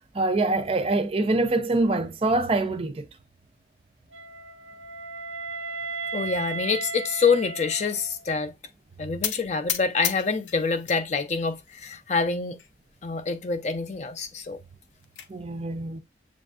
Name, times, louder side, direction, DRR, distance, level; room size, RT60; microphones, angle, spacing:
voice 1, 0.1-3.1 15.3-16.0, right 2 dB, 30° right, 0.4 m, -24 dB
Wind instrument woodwind instrument, 4.1-8.3, right 4 dB, 85° right, 0.5 m, -35 dB
voice 2, 6.1-8.5 9.0-12.6 13.0-14.6, left 5 dB, 40° left, 0.4 m, -26 dB
sound 1, 9.2-11.0 11.4-12.0 12.6-12.7 13.0-13.1 13.4-13.5 14.6-15.3, left 9 dB, 90° left, 0.5 m, -33 dB
7.1 x 2.5 x 2.3 m
head